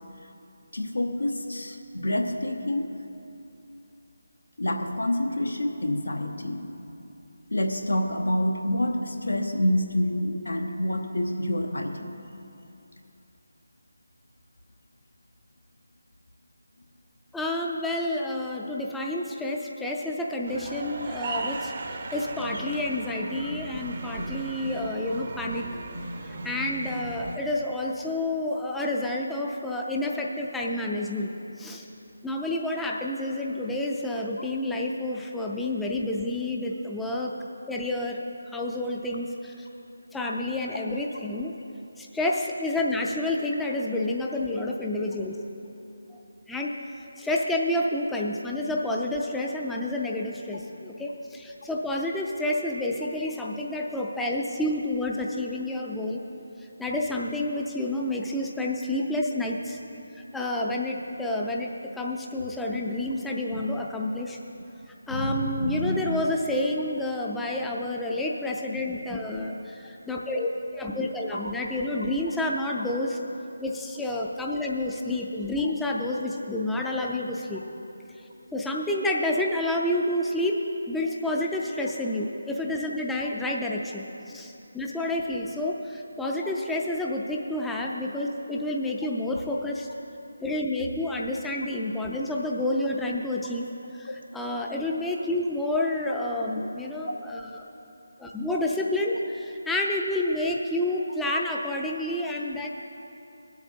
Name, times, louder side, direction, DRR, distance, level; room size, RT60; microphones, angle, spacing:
voice 1, 0.7-2.9 4.6-6.7 7.5-12.1 34.4-34.5 63.5-63.6 65.1-66.2 71.3-71.5 97.1-97.2, left 1 dB, 90° left, 4 dB, 0.9 m, -27 dB
voice 2, 17.3-21.7 22.1-25.7 26.3-31.9 32.2-37.4 37.7-38.2 38.5-39.7 40.1-41.5 42.0-45.4 46.1-46.2 46.5-46.8 47.2-56.2 56.8-59.8 60.3-64.4 65.1-73.2 73.6-77.6 78.2-78.3 78.5-89.9 90.4-97.5 98.2-102.7, left 1 dB, 5° left, -2 dB, 0.4 m, -29 dB
sound 1, 20.5-27.4, right 2 dB, 45° right, 0.7 m, -36 dB
23.0 x 7.8 x 2.7 m, 2.8 s
figure-of-eight pair, 160°, 0 cm